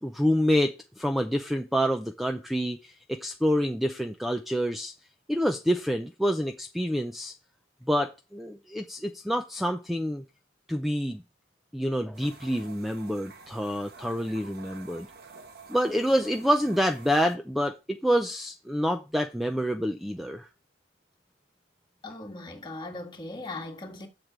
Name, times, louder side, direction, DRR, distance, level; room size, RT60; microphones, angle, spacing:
voice 1, 0.0-4.9 5.3-7.3 7.9-10.2 10.7-11.2 11.7-15.1 15.7-20.5, equal, ahead, 0.5 m, -27 dB
sound 1, 12.1-17.4, right 4 dB, 55° right, 1.2 m, -49 dB
voice 2, 22.0-24.1, left 2 dB, 25° left, 1.8 m, -39 dB
7.7 x 6.6 x 5.1 m
head